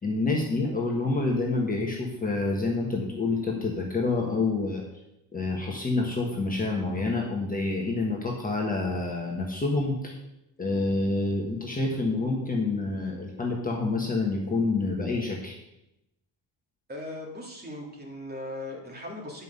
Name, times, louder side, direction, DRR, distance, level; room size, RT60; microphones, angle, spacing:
voice 1, 0.0-4.8 5.3-10.1 10.6-15.5, left 3 dB, 20° left, -2 dB, 1.4 m, -28 dB
voice 2, 16.9-19.4, left 1 dB, 20° right, -1 dB, 2.3 m, -38 dB
10.5 x 5.6 x 6.6 m, 0.88 s
cardioid pair, 150°, 43 cm